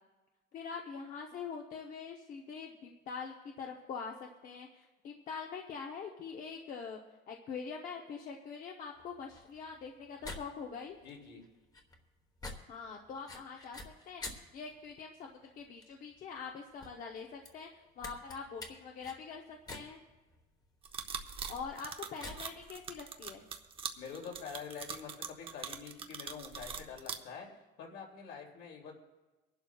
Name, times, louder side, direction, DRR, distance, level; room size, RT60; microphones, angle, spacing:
voice 1, 0.5-7.0 7.3-11.0 12.7-13.8 14.1-20.0 21.5-23.4, left 5 dB, 45° left, 1 dB, 0.9 m, -44 dB
sound 1, 9.0-24.2, left 2 dB, 20° left, 1.1 m, -51 dB
voice 2, 11.0-11.4 24.0-27.5 27.8-28.9, left 6 dB, 70° left, 0 dB, 2.7 m, -46 dB
sound 2, 20.8-27.1, right 6 dB, 30° right, 0.7 m, -42 dB
24.5 x 11.5 x 2.3 m, 1.2 s
cardioid pair, 175°, 19 cm